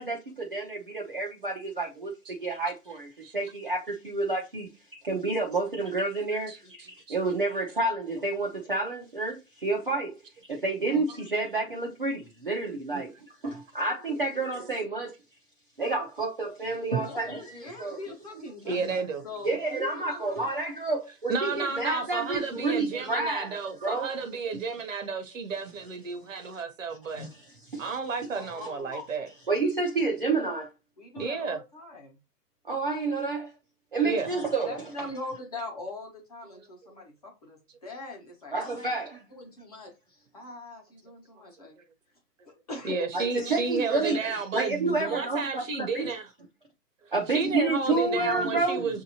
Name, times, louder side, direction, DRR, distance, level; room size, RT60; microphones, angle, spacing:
voice 1, 0.0-10.2 10.5-13.1 13.4-15.1 15.8-18.0 18.7-18.8 19.4-24.2 27.1-27.3 27.7-27.8 28.6-29.0 29.5-30.7 32.6-33.5 33.9-34.8 38.5-39.2 43.1-46.1 47.1-48.8, right 3 dB, 35° right, 0.5 m, -29 dB
voice 2, 17.0-20.4 28.3-29.0 31.0-32.2 34.0-39.0 39.3-41.8 42.4-43.1, left 2 dB, 25° left, 1.0 m, -42 dB
voice 3, 18.7-19.2 21.3-27.3 27.8-29.3 31.2-31.6 34.0-34.3 42.8-46.2 47.3-49.0, right 4 dB, 55° right, 0.9 m, -32 dB
6.9 x 2.8 x 2.8 m
hypercardioid pair, 180°, 47 cm